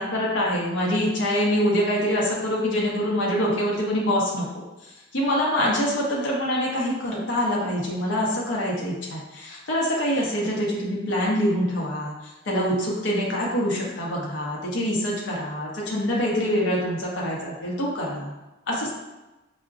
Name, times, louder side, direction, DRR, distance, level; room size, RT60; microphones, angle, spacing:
voice 1, 0.0-4.5 4.8-18.3 18.7-18.9, equal, 65° left, -4 dB, 0.7 m, -25 dB
4.5 x 2.1 x 2.4 m, 1.0 s
head